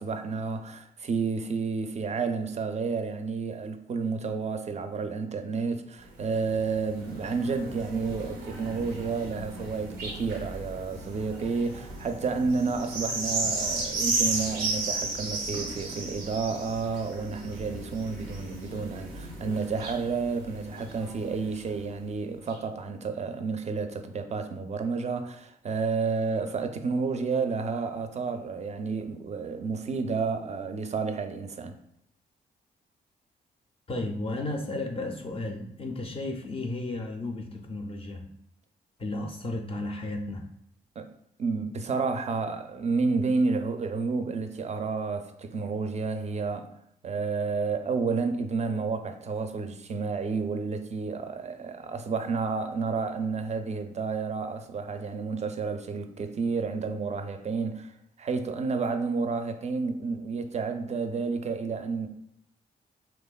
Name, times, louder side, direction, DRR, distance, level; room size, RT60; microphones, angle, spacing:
voice 1, 0.0-31.7 41.0-41.1 41.4-46.7 47.0-57.9 58.2-62.1, right 4 dB, 35° right, 0.4 m, -30 dB
sound 1, 6.0-21.9 22.5-22.6, right 3 dB, 90° right, 0.5 m, -35 dB
voice 2, 33.9-38.3 39.0-40.5, left 2 dB, 30° left, 0.4 m, -33 dB
2.9 x 2.2 x 2.3 m
supercardioid pair, 45°, 19 cm